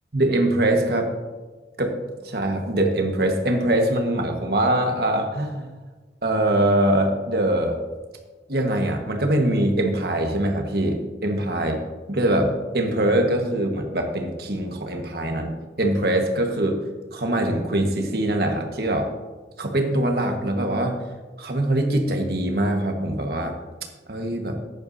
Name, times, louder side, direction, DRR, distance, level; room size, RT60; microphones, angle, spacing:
voice 1, 0.1-1.1 1.8-1.9 2.2-5.7 6.2-7.8 8.5-11.7 12.1-16.8 17.1-19.1 19.6-21.0 21.4-23.6 24.1-24.6, right 1 dB, 55° right, 3 dB, 1.5 m, -23 dB
14.0 x 10.5 x 2.7 m, 1.3 s
head